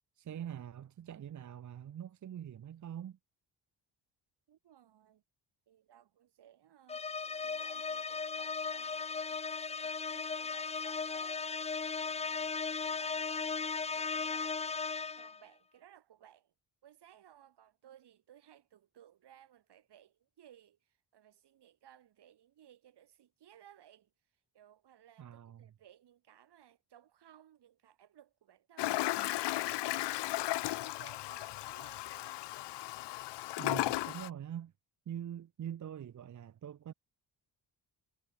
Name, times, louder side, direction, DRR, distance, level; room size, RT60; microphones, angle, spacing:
voice 1, 0.2-3.2 25.2-25.7 33.6-34.7 35.1-36.9, right 10 dB, 45° right, 0.7 m, -44 dB
voice 2, 4.5-5.2 5.7-7.0 7.4-11.5 12.0-12.5 12.8-13.7 13.9-14.7 15.1-16.5 16.8-20.8 21.1-24.1 24.5-29.4 29.9-30.4 30.8-32.5, right 10 dB, 70° right, 2.7 m, -61 dB
sound 1, 6.9-15.4, left 5 dB, 15° left, 0.4 m, -37 dB
Toilet flush, 28.8-34.3, left 17 dB, 80° left, 0.6 m, -35 dB
cardioid pair, 115°, 42 cm